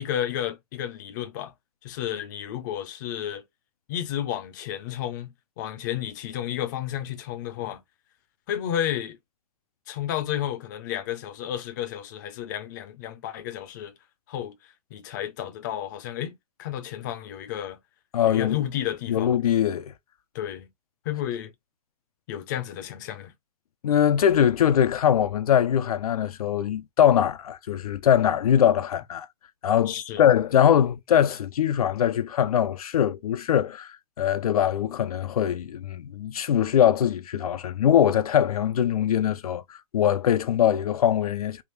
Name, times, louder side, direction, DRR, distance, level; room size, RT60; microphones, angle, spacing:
voice 1, 0.0-1.5 1.8-3.4 3.9-5.3 5.6-7.8 8.5-9.2 9.9-13.9 14.3-14.5 14.9-16.3 16.6-17.8 18.2-19.4 20.3-20.7 21.1-21.5 22.3-23.3 29.9-30.2, left 11 dB, 30° left, 0.6 m, -32 dB
voice 2, 18.1-18.6 19.1-19.9 23.8-29.3 29.6-41.6, left 9 dB, 75° left, 0.5 m, -22 dB
3.5 x 2.4 x 3.1 m
hypercardioid pair, 160°, 19 cm